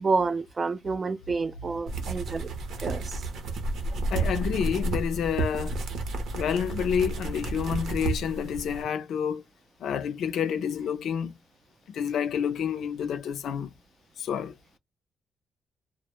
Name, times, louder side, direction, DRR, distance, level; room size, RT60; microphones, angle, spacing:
voice 1, 0.0-2.5 2.8-3.3 3.9-4.0, right 4 dB, 35° right, 0.4 m, -29 dB
sound 1, 1.9-8.8, right 3 dB, 75° right, 0.7 m, -31 dB
voice 2, 4.1-5.8 6.3-9.4 9.8-11.4 11.9-13.7 14.2-14.5, left 8 dB, 75° left, 0.5 m, -29 dB
2.1 x 2.0 x 2.9 m
cardioid pair, 85°, 0 cm